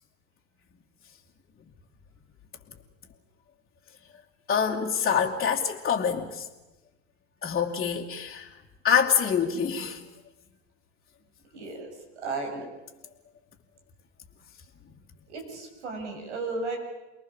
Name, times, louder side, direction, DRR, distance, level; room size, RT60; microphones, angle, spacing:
voice 1, 4.5-6.5 7.4-8.5 8.8-10.0, left 7 dB, 25° left, -3 dB, 2.5 m, -25 dB
voice 2, 11.5-12.7 15.3-16.8, right 3 dB, 80° right, 4 dB, 7.6 m, -34 dB
29.0 x 21.5 x 7.3 m, 1.1 s
hypercardioid pair, 90°, 34 cm